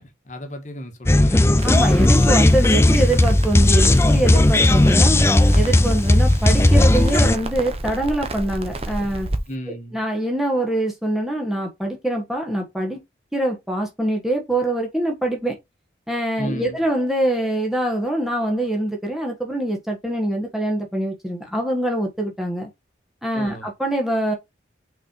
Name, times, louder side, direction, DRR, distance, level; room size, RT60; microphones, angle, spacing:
voice 1, 0.0-1.4 9.5-10.0 16.4-16.8 23.3-23.7, equal, 40° left, 1.4 m, -34 dB
sound 1, 1.1-7.4, left 1 dB, 15° left, 0.4 m, -15 dB
voice 2, 1.6-5.2 5.5-9.3 9.7-13.0 13.3-15.6 16.1-22.7 23.2-24.3, right 1 dB, ahead, 1.2 m, -24 dB
Crackle, 1.6-9.4, right 2 dB, 30° right, 0.9 m, -31 dB
5.9 x 4.2 x 4.4 m
head